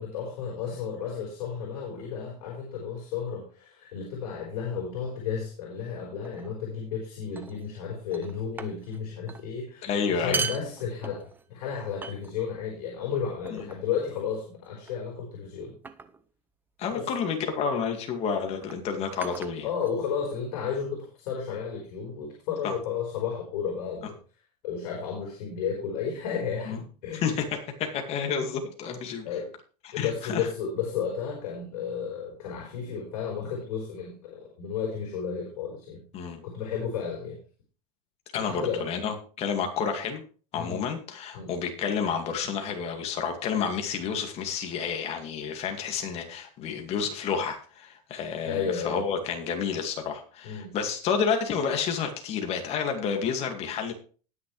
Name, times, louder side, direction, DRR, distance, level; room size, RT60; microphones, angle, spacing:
voice 1, 0.0-15.7 16.9-17.1 19.6-24.1 24.6-27.2 29.2-29.5 29.9-36.0 36.4-37.4 38.3-38.9 40.5-40.8 41.3-41.5 48.5-49.0 50.4-50.7, left 7 dB, 70° left, -2 dB, 4.8 m, -33 dB
sound 1, 6.2-6.5 7.4-7.8 8.1-9.0 9.3-9.5 10.1-11.5 12.0-12.6 13.4-13.9 14.9-15.2 15.8-16.3 17.4-17.6 18.6-20.3, right 5 dB, 10° right, 0.6 m, -38 dB
voice 2, 9.8-10.5 13.5-13.6 16.8-19.7 22.6-22.7 26.7-26.8 27.1-29.3 29.8-30.5 36.1-36.4 38.3-40.2 40.5-53.9, left 6 dB, 30° left, 4 dB, 2.2 m, -30 dB
19.5 x 6.5 x 3.3 m, 0.39 s
supercardioid pair, 155°, 20 cm